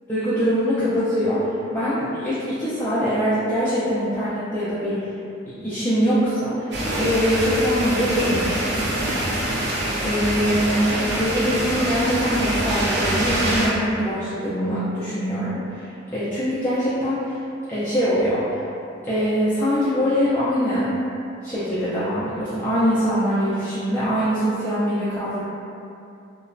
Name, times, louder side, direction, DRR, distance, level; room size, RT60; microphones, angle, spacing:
voice 1, 0.1-5.1 5.6-8.7 10.0-17.4 17.7-18.6 19.0-20.9 21.4-25.4, equal, 10° left, -14 dB, 0.3 m, -23 dB
sound 1, 6.7-13.7, right 1 dB, 55° right, 0.5 m, -24 dB
2.9 x 2.1 x 2.5 m, 2.6 s
head